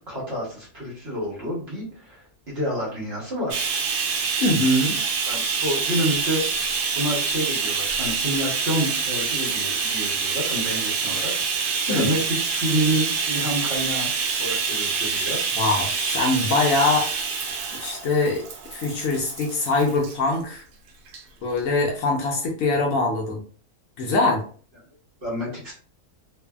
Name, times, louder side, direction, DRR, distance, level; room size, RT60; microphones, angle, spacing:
voice 1, 0.1-3.7 5.3-11.3 11.6-14.1 14.4-15.4 25.2-25.7, equal, 45° right, -4 dB, 1.1 m, -28 dB
Bathtub (filling or washing), 3.5-20.2 21.1-21.2 21.6-21.7, right 5 dB, 75° right, 1.1 m, -26 dB
voice 2, 4.4-5.0 11.9-12.1 15.5-17.1 17.7-18.4 18.7-20.6 21.4-23.4 24.0-24.4, left 2 dB, 70° left, 0 dB, 0.9 m, -23 dB
2.7 x 2.5 x 2.2 m, 0.43 s
omnidirectional pair, 1.7 m